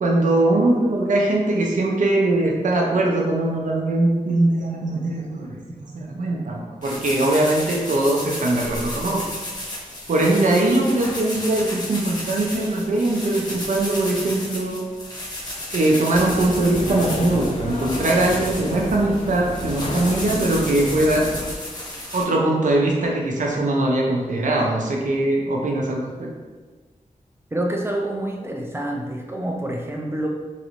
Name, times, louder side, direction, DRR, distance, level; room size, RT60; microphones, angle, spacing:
voice 1, 0.0-5.6 5.9-9.2 10.1-14.8 15.7-21.2 22.1-26.3, right 2 dB, 70° right, -1 dB, 0.6 m, -21 dB
sound 1, 6.8-22.2, left 1 dB, 30° left, 0.8 m, -33 dB
sound 2, 16.1-21.6, left 2 dB, 50° left, 0.4 m, -31 dB
voice 2, 27.5-30.3, right 1 dB, 20° right, 0 dB, 0.4 m, -27 dB
3.1 x 2.5 x 3.0 m, 1.3 s
wide cardioid pair, 115°, 14 cm